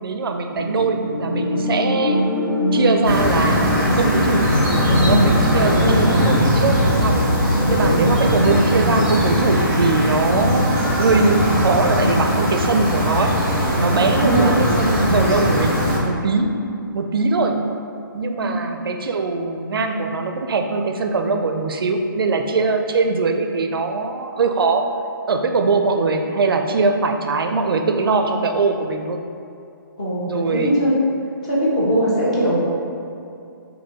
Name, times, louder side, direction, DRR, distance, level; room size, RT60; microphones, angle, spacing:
voice 1, 0.0-2.2 2.7-4.5 5.0-7.3 7.7-16.6 16.9-17.6 18.1-24.9 25.3-29.2 30.3-30.8, right 3 dB, 80° right, 5 dB, 0.4 m, -21 dB
sound 1, 0.6-12.6, left 1 dB, 65° left, 1.0 m, -23 dB
sound 2, 3.0-16.0, equal, 15° right, 0.8 m, -20 dB
voice 2, 5.4-6.3 7.8-8.1 14.0-14.5 15.0-15.3 18.4-18.5 30.0-30.9 31.4-32.8, equal, 15° left, -7 dB, 0.5 m, -21 dB
4.4 x 2.6 x 2.8 m, 2.5 s
hypercardioid pair, 175°, 12 cm